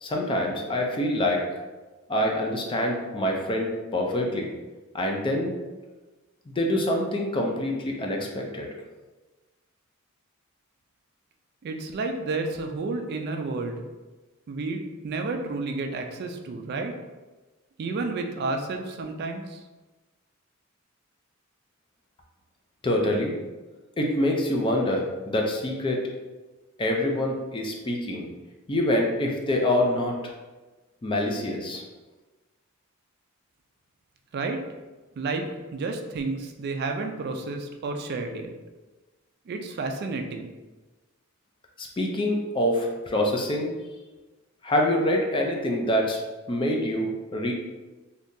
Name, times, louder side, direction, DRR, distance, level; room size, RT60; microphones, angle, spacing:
voice 1, 0.0-1.4 2.1-4.5 4.9-5.5 6.5-8.7 22.8-23.3 24.0-26.0 26.8-28.3 28.7-30.2 31.0-31.8 41.8-43.7 44.6-46.2 46.5-47.5, left 1 dB, 25° left, 0 dB, 0.4 m, -25 dB
voice 2, 11.6-13.8 14.5-16.9 17.8-19.6 34.3-34.6 35.2-38.5 39.5-40.5, right 3 dB, 50° right, 4 dB, 0.3 m, -31 dB
3.6 x 2.7 x 2.6 m, 1.2 s
head